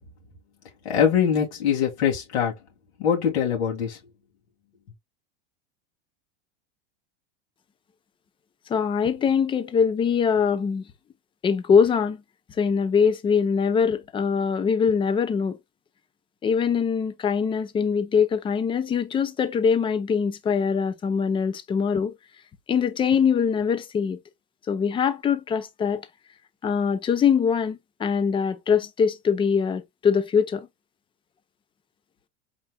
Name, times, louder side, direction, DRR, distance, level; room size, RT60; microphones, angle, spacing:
voice 1, 0.8-2.5 3.0-4.0, left 8 dB, 90° left, 2.9 m, -23 dB
voice 2, 8.7-10.9 11.4-12.2 12.6-15.6 16.4-22.1 22.7-24.2 24.7-26.1 26.6-30.7, left 6 dB, 15° left, 0.6 m, -23 dB
4.4 x 4.4 x 2.2 m
supercardioid pair, 140°, 32 cm